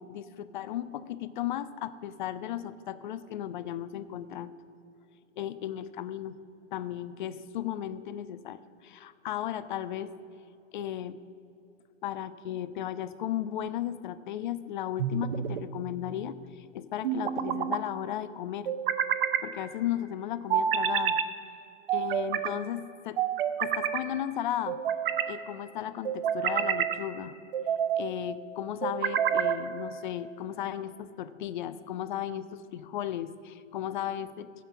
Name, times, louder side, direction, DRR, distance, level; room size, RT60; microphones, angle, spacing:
voice 1, 0.0-4.5 5.4-6.4 6.7-10.1 10.7-11.2 12.0-18.7 19.4-21.2 21.9-23.2 23.6-24.8 25.3-27.3 28.0-34.6, left 11 dB, 40° left, 14 dB, 0.5 m, -35 dB
sound 1, 15.0-15.7 17.0-17.8 18.6-19.5 20.5-21.3 21.9-22.5 23.2-24.0 24.7-25.3 26.0-27.0 27.5-28.0 28.8-29.6, right 9 dB, 45° right, 0.7 m, -28 dB
15.5 x 5.8 x 5.9 m, 2.7 s
figure-of-eight pair, 115°, 38 cm